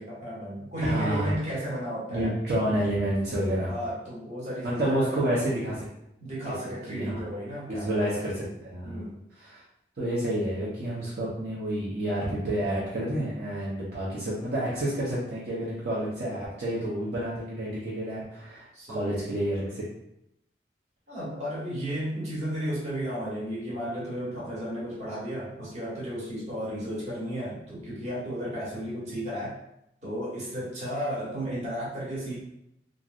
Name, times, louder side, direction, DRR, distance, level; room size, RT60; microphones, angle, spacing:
voice 1, 0.0-2.3 3.7-5.4 6.2-8.1 8.8-9.2 18.7-19.3 21.1-29.6 30.0-32.4, equal, 45° right, -8 dB, 1.2 m, -33 dB
voice 2, 0.8-1.3 2.1-3.7 4.6-5.8 6.9-7.2 7.7-9.0 9.4-9.6 10.0-19.8, right 1 dB, 65° right, -8 dB, 0.7 m, -29 dB
3.0 x 2.5 x 2.4 m, 0.81 s
head